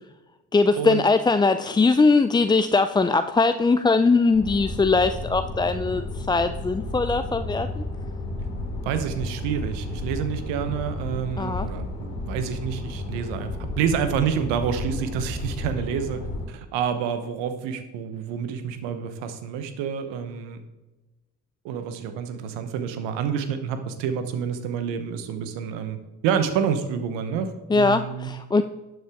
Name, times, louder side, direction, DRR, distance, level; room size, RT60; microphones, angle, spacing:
voice 1, 0.5-7.8 11.4-11.7 27.7-28.6, left 3 dB, 10° left, 10 dB, 0.3 m, -21 dB
sound 1, 4.3-16.5, left 2 dB, 75° left, 2.3 m, -32 dB
voice 2, 8.8-20.6 21.6-28.3, right 7 dB, 85° right, 9 dB, 1.1 m, -28 dB
11.5 x 7.9 x 3.5 m, 1.1 s
hypercardioid pair, 50°, 43 cm